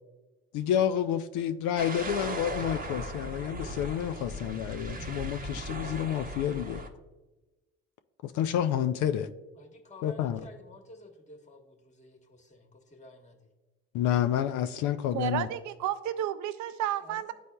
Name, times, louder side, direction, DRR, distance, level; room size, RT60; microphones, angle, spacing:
voice 1, 0.5-6.8 8.2-9.3 10.0-10.4 13.9-15.5, left 10 dB, 70° left, 0.5 m, -29 dB
sound 1, 1.8-6.9, right 1 dB, 25° right, 0.8 m, -37 dB
voice 2, 9.6-13.4 15.4-15.6 17.0-17.3, left 1 dB, 20° left, 1.2 m, -51 dB
voice 3, 15.1-17.3, right 11 dB, 65° right, 0.5 m, -32 dB
11.0 x 4.2 x 2.2 m
supercardioid pair, 65°, 31 cm